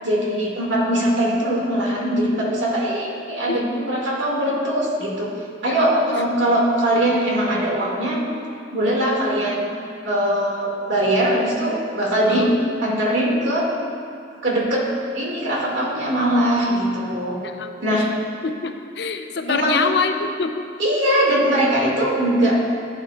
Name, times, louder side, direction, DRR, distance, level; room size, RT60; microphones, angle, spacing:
voice 1, 0.0-5.3 5.6-8.2 8.7-9.7 10.0-12.5 12.8-13.7 14.4-14.9 15.1-17.4 17.8-18.1 19.5-19.8 20.8-22.6, right 1 dB, 80° right, -3 dB, 2.2 m, -21 dB
voice 2, 5.7-6.2 12.3-12.5 17.4-18.0 18.4-20.7, left 5 dB, 60° left, 6 dB, 0.6 m, -26 dB
15.0 x 9.0 x 2.4 m, 2.4 s
head